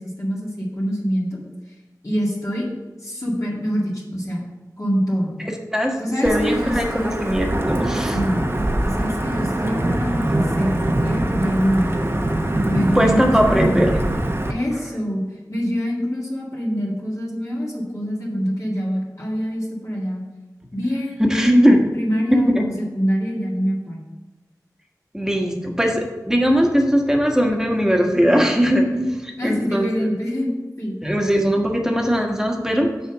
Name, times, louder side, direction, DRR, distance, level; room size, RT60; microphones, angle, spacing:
voice 1, 0.0-1.4 2.0-2.7 3.0-4.5 4.8-5.3 6.0-7.2 8.1-8.5 8.8-11.9 12.7-13.8 14.5-15.2 15.5-20.2 20.7-21.5 21.9-24.0 29.4-30.9, equal, 50° left, -6 dB, 2.0 m, -25 dB
voice 2, 6.2-8.2 12.9-14.0 21.3-21.8 22.3-22.6 25.1-30.1 31.0-32.9, equal, 10° right, 1 dB, 1.3 m, -19 dB
Wind / Thunder / Rain, 6.3-14.5, right 1 dB, 35° right, 0.9 m, -23 dB
6.8 x 4.3 x 6.6 m, 1.2 s
wide cardioid pair, 50°, 7 cm